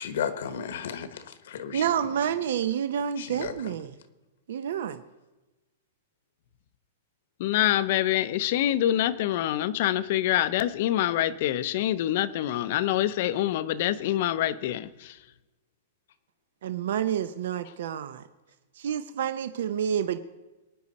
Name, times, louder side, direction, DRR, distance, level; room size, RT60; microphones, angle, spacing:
voice 1, 0.0-2.1 3.2-3.8, left 7 dB, 65° left, 11 dB, 1.2 m, -34 dB
voice 2, 1.7-4.0 4.5-5.0 16.6-18.2 18.8-20.2, right 9 dB, 65° right, 11 dB, 0.6 m, -29 dB
voice 3, 7.4-15.2, left 12 dB, 45° left, 15 dB, 0.6 m, -26 dB
22.0 x 9.6 x 4.2 m, 1.1 s
supercardioid pair, 175°, 0 cm